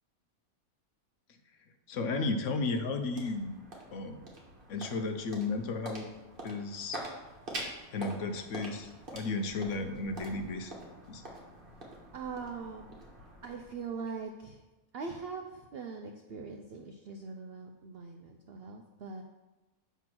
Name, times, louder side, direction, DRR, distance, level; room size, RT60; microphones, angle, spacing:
voice 1, 1.9-3.5 3.9-4.2 4.7-6.1 6.4-7.0 7.9-10.7 11.1-11.2, left 3 dB, 65° left, 6 dB, 0.9 m, -34 dB
sound 1, 2.2-14.6, right 1 dB, 40° right, 1.4 m, -46 dB
voice 2, 12.1-13.0 13.4-14.6 14.9-19.2, right 5 dB, 70° right, 4 dB, 0.5 m, -42 dB
7.3 x 3.5 x 6.0 m, 1.1 s
omnidirectional pair, 1.5 m